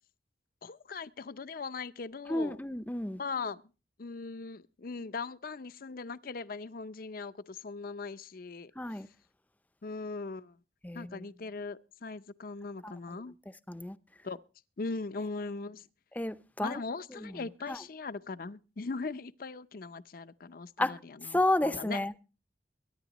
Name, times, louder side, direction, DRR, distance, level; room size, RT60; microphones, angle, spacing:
voice 1, 0.6-2.6 3.2-3.6 4.0-8.7 9.8-10.6 10.9-13.3 14.2-14.4 14.8-15.9 16.6-22.0, left 4 dB, 55° left, 0.6 m, -39 dB
voice 2, 2.3-3.2 8.8-9.1 10.8-11.1 13.7-14.0 16.2-16.8 17.7-17.8 20.8-20.9 21.3-22.2, left 1 dB, 10° left, 0.6 m, -30 dB
23.0 x 10.5 x 3.0 m
head